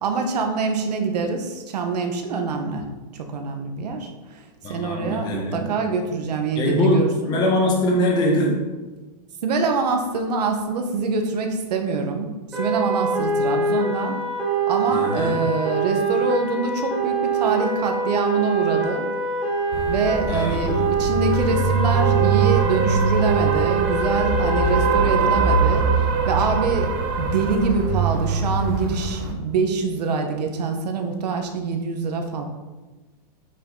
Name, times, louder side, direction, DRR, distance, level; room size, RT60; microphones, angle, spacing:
voice 1, 0.0-2.8 3.1-4.4 4.7-7.4 9.4-14.2 14.7-19.0 19.9-25.9 26.3-26.9 27.2-32.4, right 4 dB, 80° right, 4 dB, 1.4 m, -25 dB
voice 2, 4.6-5.7 6.5-8.5 14.9-15.4 20.3-21.1, left 1 dB, 20° left, 0 dB, 1.4 m, -22 dB
sound 1, 12.5-25.0, right 4 dB, 5° right, 1.5 m, -24 dB
sound 2, 19.7-29.3, right 4 dB, 30° right, 0.8 m, -22 dB
8.3 x 6.0 x 4.0 m, 1.2 s
supercardioid pair, 170°, 21 cm